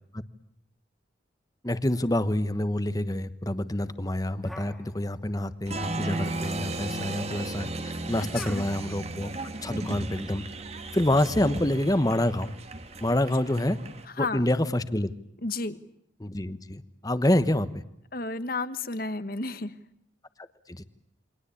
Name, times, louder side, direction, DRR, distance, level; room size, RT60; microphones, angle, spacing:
voice 1, 1.6-9.3 9.6-10.4 10.9-12.5 13.0-13.8 14.2-15.1 16.2-17.8 20.7-20.8, left 1 dB, 20° left, 12 dB, 1.1 m, -27 dB
sound 1, 4.4-5.4 5.7-6.5 8.1-9.0, equal, ahead, 2.6 m, -45 dB
Applause, 5.7-14.0, right 2 dB, 35° right, 1.6 m, -35 dB
voice 2, 8.3-8.7 14.0-14.4 15.4-15.8 18.1-19.8, left 3 dB, 50° left, 12 dB, 1.3 m, -32 dB
28.5 x 23.5 x 8.5 m, 0.73 s
head